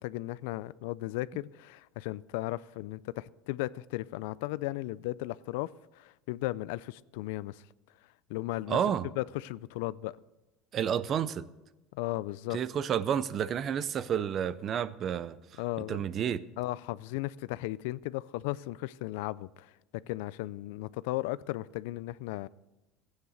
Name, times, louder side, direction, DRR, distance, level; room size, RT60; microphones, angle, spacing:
voice 1, 0.0-7.6 8.3-8.8 9.2-10.2 11.9-12.6 15.6-16.0 16.6-19.7 20.1-22.5, left 18 dB, 80° left, 0.4 m, -36 dB
voice 2, 8.7-9.1 10.7-11.5 12.5-15.6 15.9-16.4, right 8 dB, 35° right, 0.5 m, -30 dB
15.0 x 9.6 x 6.4 m
cardioid pair, 145°, 0 cm